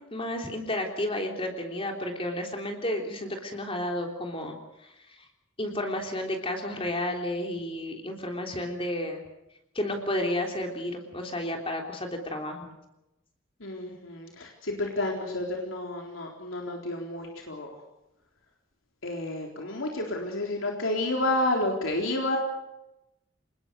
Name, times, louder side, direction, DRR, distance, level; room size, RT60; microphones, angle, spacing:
voice 1, 0.0-4.6 4.8-5.2 5.6-9.2 9.7-12.7, left 1 dB, 25° left, 2 dB, 3.4 m, -32 dB
voice 2, 13.6-17.7 19.0-22.4, left 1 dB, 80° left, 1 dB, 4.0 m, -30 dB
27.0 x 20.5 x 6.4 m, 0.90 s
head